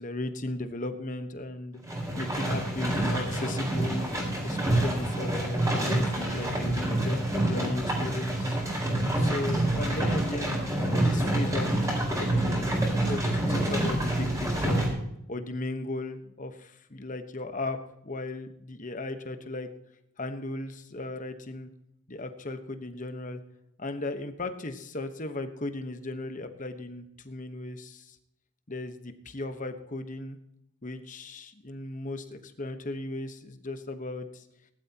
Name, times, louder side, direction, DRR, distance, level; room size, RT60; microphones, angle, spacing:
voice 1, 0.0-1.8 2.2-8.6 9.1-10.6 11.0-11.7 12.1-12.7 13.1-14.9 15.3-19.7 20.2-21.7 22.1-23.4 23.8-28.2 28.7-30.4 30.8-34.4, left 2 dB, 35° left, 8 dB, 1.2 m, -36 dB
sound 1, 1.8-14.9, right 1 dB, 15° right, 4.5 m, -27 dB
19.5 x 12.0 x 2.9 m, 0.77 s
head